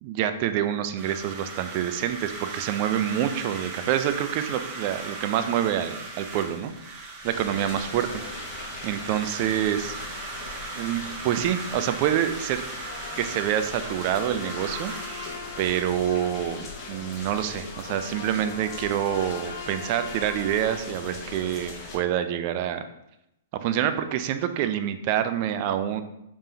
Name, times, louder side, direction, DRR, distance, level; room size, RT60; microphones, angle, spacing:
voice 1, 0.0-6.7 7.2-8.1 8.8-10.0 10.8-12.6 13.2-14.9 15.6-22.8 23.5-26.0, right 10 dB, 45° right, 9 dB, 0.4 m, -27 dB
sound 1, 1.0-15.8, right 3 dB, 25° right, 1.3 m, -38 dB
sound 2, 7.2-22.0, left 3 dB, 35° left, 1.0 m, -40 dB
sound 3, 12.8-20.8, left 6 dB, 55° left, 0.4 m, -42 dB
5.1 x 3.5 x 2.8 m, 0.84 s
figure-of-eight pair, 110°, 0 cm